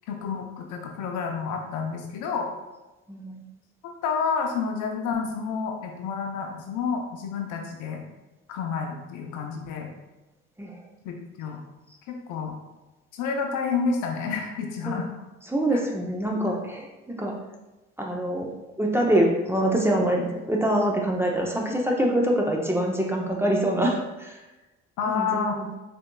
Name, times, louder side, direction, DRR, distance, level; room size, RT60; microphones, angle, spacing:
voice 1, 0.1-2.5 4.0-8.0 8.5-9.9 11.0-11.6 12.1-12.6 13.1-15.1 15.7-15.8 25.0-25.6, left 5 dB, 65° left, 2 dB, 0.7 m, -29 dB
voice 2, 3.1-3.4 10.6-10.8 14.9-15.0 15.4-17.4 18.0-18.5 18.8-24.5 25.1-25.8, right 1 dB, 5° right, -1 dB, 0.6 m, -25 dB
4.2 x 2.6 x 2.2 m, 1.1 s
hypercardioid pair, 65°, 33 cm